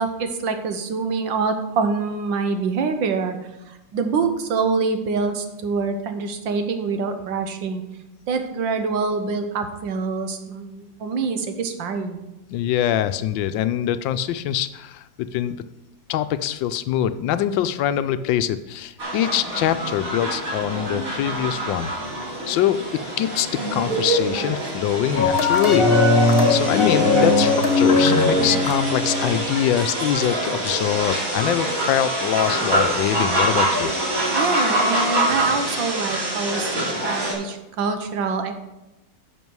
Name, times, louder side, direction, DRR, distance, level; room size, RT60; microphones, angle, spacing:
voice 1, 0.0-3.4 3.7-7.8 8.3-12.2 34.3-38.5, right 4 dB, 85° right, 7 dB, 1.8 m, -25 dB
voice 2, 12.5-15.6 16.1-21.9 22.5-25.9 26.5-33.9, left 11 dB, 85° left, 12 dB, 1.3 m, -24 dB
sound 1, 19.0-37.3, right 1 dB, 45° right, 3.2 m, -25 dB
sound 2, 25.1-29.5, left 3 dB, 40° left, 1.0 m, -18 dB
11.0 x 6.7 x 4.7 m, 0.98 s
omnidirectional pair, 2.0 m